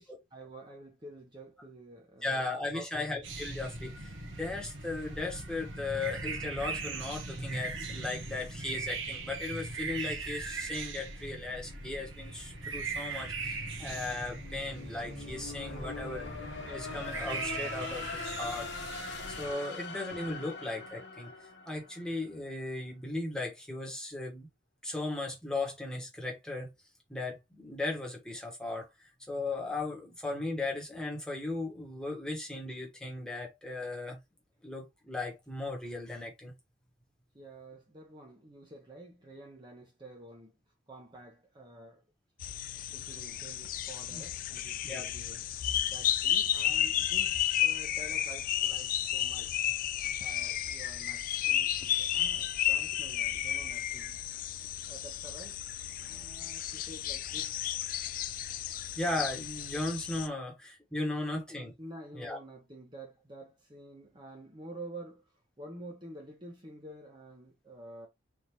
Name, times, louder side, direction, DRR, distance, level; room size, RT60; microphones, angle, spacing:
voice 1, 0.0-2.4 2.7-3.1 37.3-40.5 40.9-42.0 42.9-45.5 45.8-49.7 50.2-54.2 54.9-55.6 55.9-57.6 61.8-68.1, right 1 dB, 25° right, 0.8 m, -49 dB
voice 2, 2.2-18.7 19.3-21.3 21.7-24.5 24.8-26.7 27.1-28.9 29.3-34.2 34.6-36.5 44.1-44.2 44.8-45.1 59.0-61.7 62.1-62.4, left 2 dB, 5° left, 1.1 m, -37 dB
sound 1, 3.2-19.5, right 3 dB, 90° right, 1.1 m, -40 dB
sound 2, 11.9-22.5, left 3 dB, 70° left, 1.0 m, -43 dB
sound 3, 42.4-60.3, left 11 dB, 45° left, 0.3 m, -32 dB
4.0 x 3.5 x 2.9 m
head